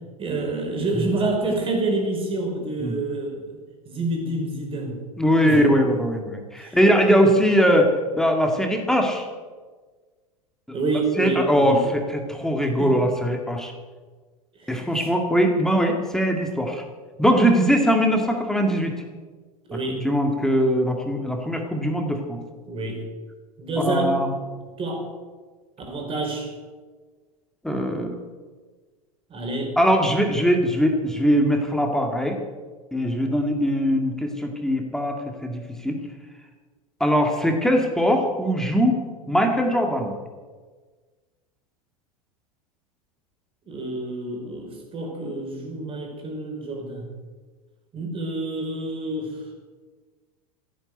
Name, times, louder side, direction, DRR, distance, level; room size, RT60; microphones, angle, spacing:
voice 1, 0.2-3.5 3.9-5.0 5.4-5.6 6.6-6.8 10.7-11.8 12.8-13.0 14.6-14.7 15.0-15.1 19.7-20.1 22.6-23.0 23.6-24.2 24.8-25.1 25.9-26.5 29.3-29.8 43.6-47.1 47.9-49.4, right 2 dB, 30° right, 1 dB, 5.5 m, -27 dB
voice 2, 5.2-9.3 11.2-13.7 14.7-16.8 17.2-18.9 20.0-22.4 23.8-24.3 27.6-28.2 29.8-32.4 32.9-36.0 37.0-40.1, equal, ahead, 2 dB, 2.1 m, -21 dB
15.0 x 10.5 x 8.1 m, 1.4 s
figure-of-eight pair, 85°, 19 cm